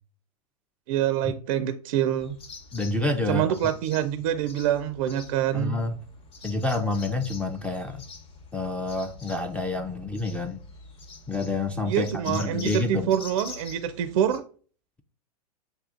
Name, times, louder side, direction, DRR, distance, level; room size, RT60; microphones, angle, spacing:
voice 1, 0.9-2.4 3.3-5.8 11.9-14.4, right 10 dB, 60° right, 0.4 m, -26 dB
sound 1, 2.2-14.4, left 3 dB, 25° left, 0.8 m, -45 dB
voice 2, 2.7-3.5 5.5-6.0 6.4-8.0 8.5-10.6 11.3-13.1, left 2 dB, 5° left, 0.3 m, -28 dB
7.5 x 2.7 x 2.5 m
hypercardioid pair, 110°, 20 cm